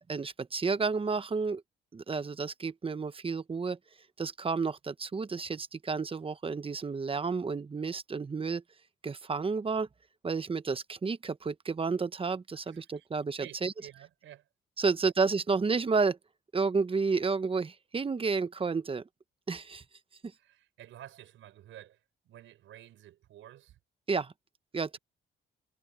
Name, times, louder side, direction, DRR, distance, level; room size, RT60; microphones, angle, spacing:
voice 1, 0.1-1.6 1.9-3.8 4.2-8.6 9.0-9.9 10.2-13.7 14.8-16.2 16.5-19.0 19.5-19.8 24.1-24.3 24.7-25.0, right 4 dB, 25° right, 1.0 m, -31 dB
voice 2, 12.7-13.1 13.4-14.5 20.4-22.0 22.3-23.8, right 12 dB, 80° right, 5.5 m, -51 dB
cardioid pair, 90°, 20 cm